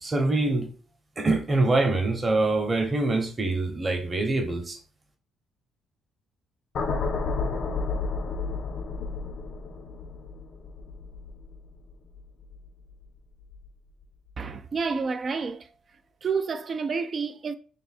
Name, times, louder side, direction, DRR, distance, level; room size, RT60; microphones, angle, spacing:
voice 1, 0.0-0.7 1.2-4.8, right 2 dB, 25° right, 0.9 m, -24 dB
sound 1, 6.7-13.0 13.4-13.7, left 4 dB, 60° left, 0.7 m, -32 dB
voice 2, 14.4-17.6, right 5 dB, 40° right, 0.3 m, -30 dB
3.3 x 2.6 x 4.2 m
cardioid pair, 100°, 0 cm